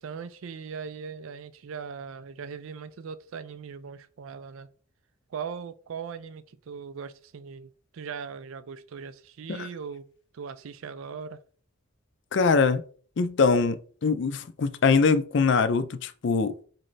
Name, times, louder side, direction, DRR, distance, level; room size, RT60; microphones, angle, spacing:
voice 1, 0.0-4.7 5.3-10.1 10.3-11.4, right 6 dB, 75° right, 0.4 m, -39 dB
voice 2, 12.3-12.8 13.2-16.6, left 4 dB, 55° left, 0.4 m, -23 dB
4.1 x 3.2 x 3.9 m
head